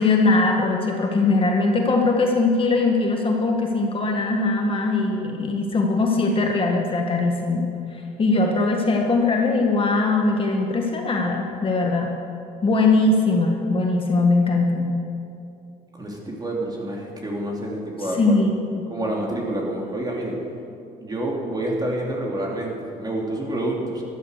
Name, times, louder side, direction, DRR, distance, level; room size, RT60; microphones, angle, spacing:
voice 1, 0.0-7.7 8.2-12.1 12.6-14.9 18.1-18.8, left 3 dB, 30° left, 1 dB, 1.7 m, -21 dB
voice 2, 15.9-18.5 18.9-20.4 21.0-24.0, right 1 dB, 25° right, -2 dB, 3.5 m, -28 dB
14.5 x 12.5 x 6.8 m, 2.6 s
cardioid pair, 110°, 17 cm